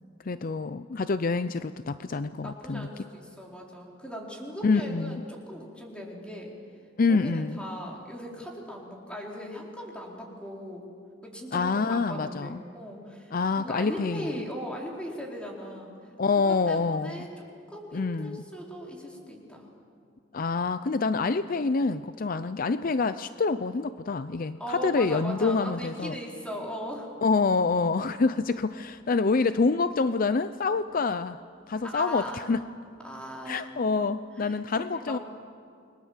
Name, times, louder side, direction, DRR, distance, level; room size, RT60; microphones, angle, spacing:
voice 1, 0.2-2.9 4.6-5.2 7.0-7.6 11.5-12.6 13.3-14.3 16.2-17.3 17.9-18.4 20.3-26.2 27.2-31.4 31.7-32.6 33.5-35.2, left 4 dB, 50° left, 12 dB, 0.5 m, -26 dB
voice 2, 2.4-6.5 7.1-10.9 11.2-17.3 17.7-19.7 24.6-27.1 31.8-32.4 33.0-33.7 34.4-35.2, equal, 5° left, -2 dB, 4.2 m, -39 dB
29.0 x 22.0 x 7.4 m, 2.3 s
head